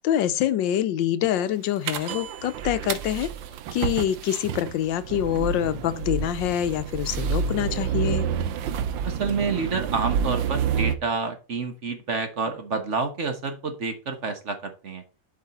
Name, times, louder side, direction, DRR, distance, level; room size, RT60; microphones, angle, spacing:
voice 1, 0.0-3.3 3.7-8.3, left 11 dB, 85° left, 1.4 m, -25 dB
sound 1, 1.8-11.0, right 7 dB, 90° right, 1.5 m, -29 dB
voice 2, 9.0-15.0, right 4 dB, 45° right, 1.3 m, -29 dB
7.5 x 5.5 x 4.2 m
omnidirectional pair, 2.0 m